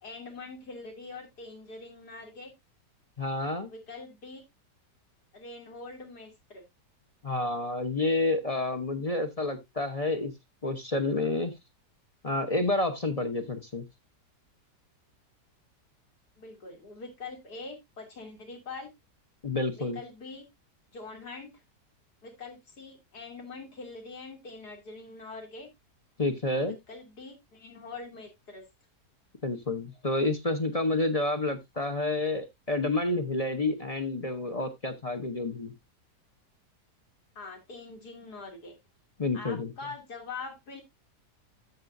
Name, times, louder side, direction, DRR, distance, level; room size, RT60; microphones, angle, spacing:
voice 1, 0.0-2.5 3.7-4.4 5.3-6.6 16.4-18.9 19.8-20.5 20.9-21.5 22.2-25.7 26.7-28.6 37.4-38.8 39.3-40.8, left 3 dB, 70° left, 2 dB, 3.3 m, -43 dB
voice 2, 3.2-3.7 7.2-10.3 10.6-11.5 12.2-13.8 19.4-20.0 26.2-26.8 29.4-35.7 39.2-39.7, left 2 dB, 30° left, 7 dB, 0.7 m, -29 dB
13.5 x 5.7 x 2.6 m, 0.19 s
omnidirectional pair, 1.8 m